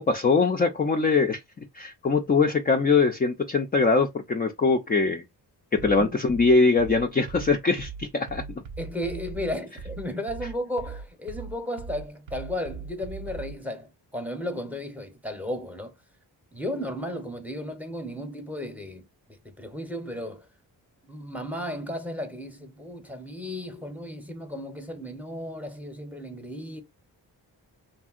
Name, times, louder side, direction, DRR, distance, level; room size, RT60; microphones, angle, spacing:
voice 1, 0.0-1.4 1.7-5.2 5.7-8.4, left 4 dB, 20° left, 0.4 m, -22 dB
voice 2, 5.8-6.1 8.8-15.9 16.5-20.5 21.0-26.8, left 1 dB, 5° right, 0.7 m, -34 dB
sound 1, 5.8-13.6, right 5 dB, 75° right, 0.6 m, -39 dB
2.7 x 2.6 x 2.4 m
cardioid pair, 50°, 45 cm